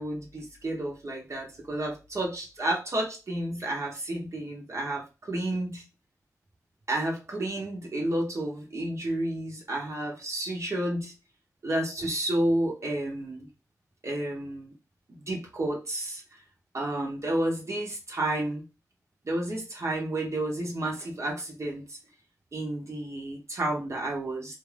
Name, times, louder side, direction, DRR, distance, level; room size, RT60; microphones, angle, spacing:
voice 1, 0.0-5.8 6.9-11.1 11.6-13.5 14.0-14.7 15.3-16.4 16.7-18.6 19.2-22.0 22.5-24.6, right 1 dB, 55° right, -2 dB, 0.8 m, -31 dB
2.5 x 2.4 x 3.2 m, 0.29 s
cardioid pair, 60°, 6 cm